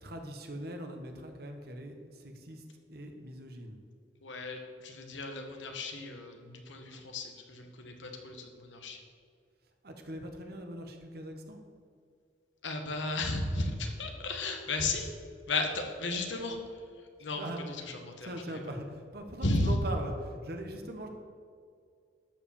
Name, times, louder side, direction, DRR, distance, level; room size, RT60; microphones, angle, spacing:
voice 1, 0.0-2.6 2.9-3.8 9.8-11.6 17.4-17.6 18.2-21.1, right 1 dB, 55° right, 4 dB, 1.3 m, -41 dB
voice 2, 4.2-9.0 12.6-15.1 15.5-18.6 19.4-19.8, left 2 dB, 90° left, 4 dB, 1.4 m, -34 dB
12.0 x 5.0 x 7.1 m, 2.2 s
head